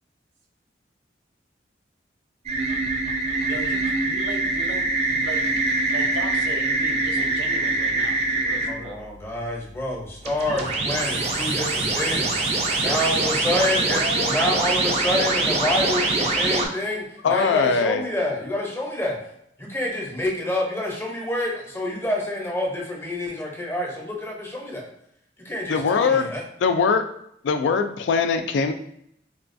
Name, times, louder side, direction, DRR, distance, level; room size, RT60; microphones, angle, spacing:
sound 1, 2.5-8.7 10.2-16.7, right 2 dB, 35° right, 0.4 m, -24 dB
voice 1, 3.5-9.0 12.8-15.5, right 1 dB, 85° right, 2 dB, 0.6 m, -36 dB
voice 2, 8.7-12.4 12.8-14.0 14.3-19.2 19.6-24.9 25.4-26.4, left 1 dB, 15° left, -2 dB, 0.6 m, -27 dB
voice 3, 17.2-18.0 25.7-26.3 26.6-27.0 27.4-28.7, left 5 dB, 80° left, 8 dB, 0.3 m, -21 dB
4.0 x 2.3 x 2.5 m, 0.72 s
head